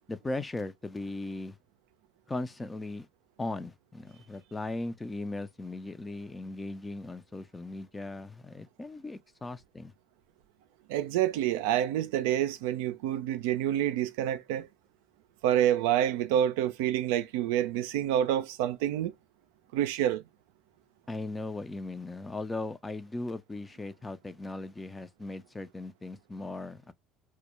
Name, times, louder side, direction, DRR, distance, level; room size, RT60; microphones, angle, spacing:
voice 1, 0.1-1.6 2.3-3.1 3.4-9.9 21.1-26.9, left 2 dB, 15° left, 0.4 m, -38 dB
voice 2, 10.9-14.7 15.4-19.1 19.7-20.2, right 11 dB, 80° right, 0.3 m, -27 dB
2.2 x 2.0 x 2.8 m
hypercardioid pair, 75°, 0 cm